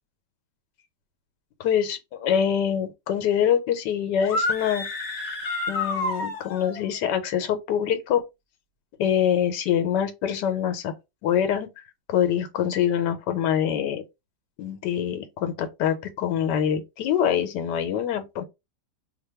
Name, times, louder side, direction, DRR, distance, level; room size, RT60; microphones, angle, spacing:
voice 1, 1.6-4.9 5.7-8.2 9.0-10.9 11.2-11.7 12.1-14.0 14.6-18.4, left 9 dB, 90° left, 1.3 m, -25 dB
sound 1, 4.2-6.8, left 2 dB, 45° left, 1.1 m, -29 dB
2.9 x 2.2 x 4.2 m
omnidirectional pair, 1.8 m